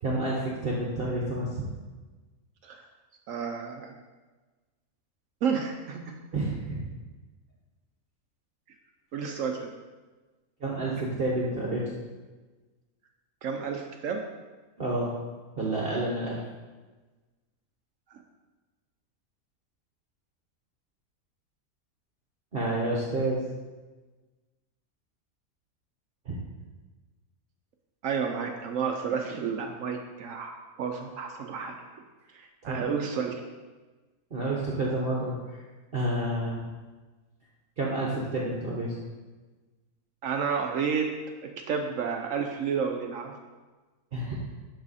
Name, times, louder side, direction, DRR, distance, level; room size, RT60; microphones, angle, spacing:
voice 1, 0.0-1.6 6.3-6.9 10.6-11.8 14.8-15.1 15.6-16.4 22.5-23.4 26.2-26.4 32.6-32.9 34.3-35.6 35.9-36.6 37.8-38.9 44.1-44.4, right 2 dB, 45° right, -4 dB, 1.1 m, -29 dB
voice 2, 3.3-4.0 5.4-6.2 9.1-9.7 13.4-14.2 28.0-32.0 32.3-33.5 40.2-41.1 41.4-43.3, right 6 dB, 70° right, 3 dB, 1.0 m, -31 dB
11.0 x 4.0 x 4.1 m, 1.3 s
omnidirectional pair, 1.5 m